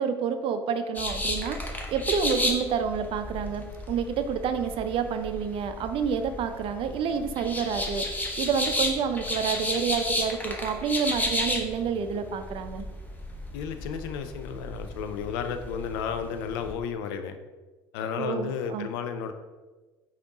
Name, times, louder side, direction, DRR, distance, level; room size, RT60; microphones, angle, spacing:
voice 1, 0.0-1.6 1.9-8.1 8.4-12.8 18.2-18.9, right 6 dB, 45° right, 8 dB, 0.4 m, -29 dB
sound 1, 0.9-16.7, left 1 dB, 15° left, 0.8 m, -33 dB
voice 2, 13.5-17.4 17.9-19.3, left 7 dB, 65° left, 8 dB, 0.4 m, -33 dB
5.1 x 2.4 x 3.9 m, 1.2 s
figure-of-eight pair, 60°, 13 cm